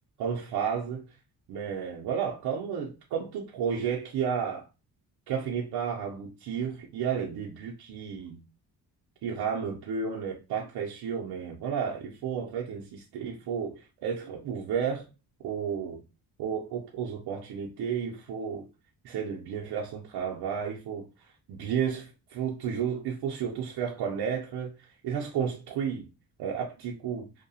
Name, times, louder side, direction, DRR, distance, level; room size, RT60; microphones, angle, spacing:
voice 1, 0.2-1.0 1.5-4.7 5.3-8.4 9.2-15.1 15.4-16.0 16.4-18.7 19.0-26.1 26.4-27.3, right 7 dB, 80° right, 0.6 m, -32 dB
2.7 x 2.2 x 2.7 m
cardioid pair, 105°, 39 cm